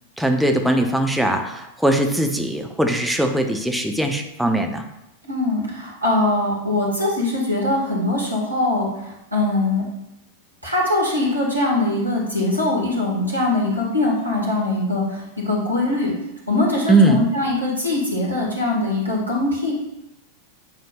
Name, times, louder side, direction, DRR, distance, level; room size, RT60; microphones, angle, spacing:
voice 1, 0.2-4.8 16.9-17.2, right 1 dB, ahead, 3 dB, 0.7 m, -20 dB
voice 2, 5.2-9.9 10.6-16.1 16.5-19.7, left 2 dB, 85° right, -4 dB, 1.9 m, -22 dB
8.9 x 4.4 x 2.4 m, 0.90 s
figure-of-eight pair, 90°, 0 cm